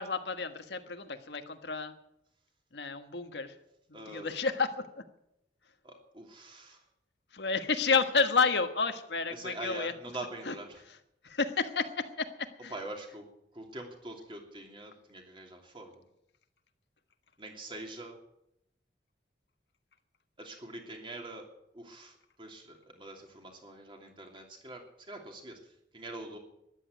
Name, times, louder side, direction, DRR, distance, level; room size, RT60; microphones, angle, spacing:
voice 1, 0.0-1.9 2.7-3.6 4.1-5.0 7.3-9.9 10.5-10.6 11.2-12.7, left 4 dB, 75° left, 7 dB, 1.4 m, -30 dB
voice 2, 3.9-4.4 5.8-6.9 9.3-10.8 12.7-13.3 13.5-16.1 17.4-18.2 20.4-21.5 21.7-26.4, right 2 dB, 30° right, 2 dB, 2.9 m, -44 dB
13.5 x 11.0 x 9.3 m, 0.81 s
head